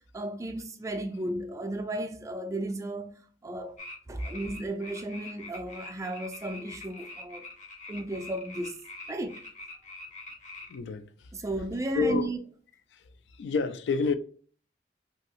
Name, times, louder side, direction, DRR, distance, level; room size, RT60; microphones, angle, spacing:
voice 1, 0.1-3.8 4.1-7.4 7.9-8.8 9.1-9.4 11.3-12.4, right 1 dB, 20° right, 0.3 m, -34 dB
sound 1, 3.8-10.8, left 2 dB, 45° left, 0.6 m, -44 dB
voice 2, 10.7-11.1 11.9-12.3 13.4-14.2, left 4 dB, 80° left, 0.3 m, -27 dB
2.8 x 2.6 x 2.8 m
head